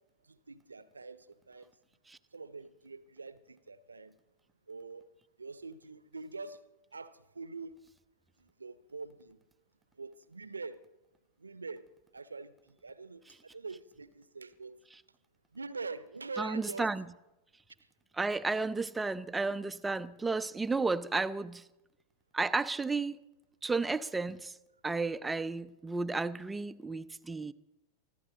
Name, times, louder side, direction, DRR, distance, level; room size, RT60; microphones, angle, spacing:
voice 1, 0.2-1.7 2.3-4.2 4.7-5.0 5.4-6.6 6.9-7.7 8.4-9.4 10.0-10.8 11.4-14.8 15.5-16.9, right 4 dB, 80° right, 0.8 m, -44 dB
voice 2, 16.4-17.0 18.2-21.6 22.3-23.2 23.6-24.6 24.8-27.5, right 3 dB, 10° right, 0.6 m, -32 dB
24.5 x 15.0 x 3.9 m
figure-of-eight pair, 90°, 0 cm